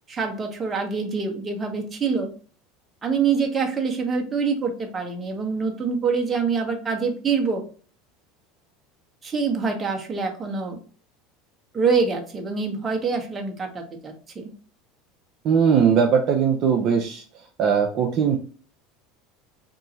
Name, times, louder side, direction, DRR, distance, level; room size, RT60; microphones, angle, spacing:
voice 1, 0.1-2.3 3.0-7.6 9.2-10.8 11.7-14.5, right 5 dB, 25° right, 2 dB, 1.1 m, -25 dB
voice 2, 15.4-17.2 17.6-18.4, right 7 dB, 50° right, 1 dB, 0.6 m, -19 dB
3.7 x 2.8 x 3.9 m, 0.41 s
supercardioid pair, 100°, 0 cm